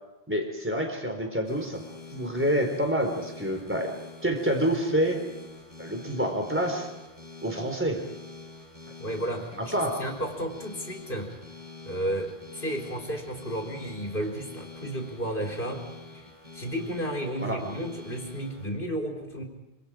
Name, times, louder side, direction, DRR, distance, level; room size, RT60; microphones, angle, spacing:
voice 1, 0.3-1.8 2.1-3.9 4.2-5.2 5.8-6.9 7.4-8.0 9.5-10.0 17.4-17.6, equal, 10° right, 3 dB, 4.3 m, -27 dB
sound 1, 1.5-18.7, left 4 dB, 45° right, 8.0 m, -46 dB
voice 2, 9.0-11.3 11.8-15.9 16.1-16.2 16.5-19.4, right 1 dB, 50° left, 1 dB, 4.0 m, -33 dB
26.5 x 26.0 x 5.2 m, 1.0 s
omnidirectional pair, 1.2 m